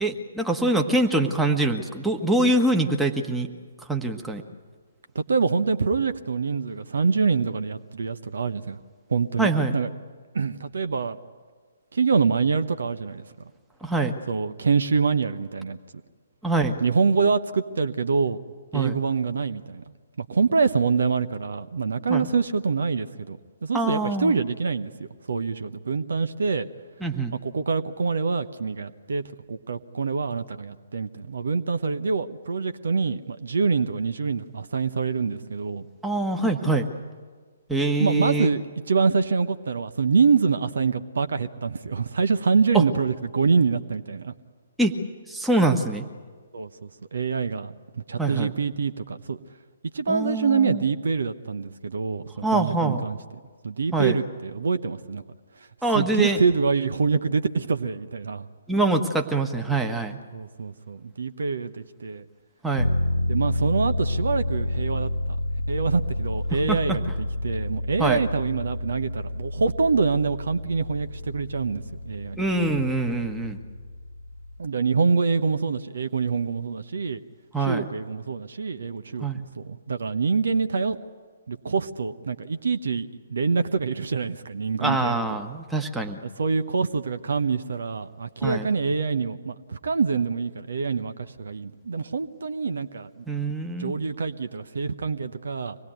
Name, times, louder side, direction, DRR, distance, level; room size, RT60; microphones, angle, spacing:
voice 1, 0.0-3.5 3.9-4.4 9.4-9.8 13.8-14.2 16.4-16.8 18.7-19.0 22.1-22.2 23.7-24.3 27.0-27.3 36.0-36.9 37.7-38.5 42.7-42.8 44.8-44.9 45.3-46.0 48.2-48.5 50.1-50.8 52.4-53.1 53.9-54.2 55.8-56.4 58.7-60.2 62.6-62.9 66.7-67.0 68.0-68.2 72.4-73.6 77.5-77.9 79.2-79.4 84.8-86.2 88.4-88.7 93.3-93.9, right 2 dB, 5° right, 2 dB, 1.5 m, -24 dB
voice 2, 5.1-8.8 9.1-9.9 10.3-11.2 11.9-13.2 14.3-15.8 16.8-18.4 18.7-19.8 20.2-24.9 25.3-26.7 27.4-29.2 29.5-35.8 38.0-38.6 38.9-44.3 46.5-49.4 49.9-53.2 53.6-55.2 55.9-58.5 60.3-62.3 63.3-65.1 65.7-72.4 74.6-77.2 77.6-81.0 81.5-85.2 86.4-93.2 93.8-95.8, right 5 dB, 60° right, 10 dB, 1.0 m, -25 dB
sound 1, 62.8-74.6, left 1 dB, 75° left, 0.8 m, -29 dB
25.0 x 19.5 x 9.3 m, 1.5 s
figure-of-eight pair, 130°, 0 cm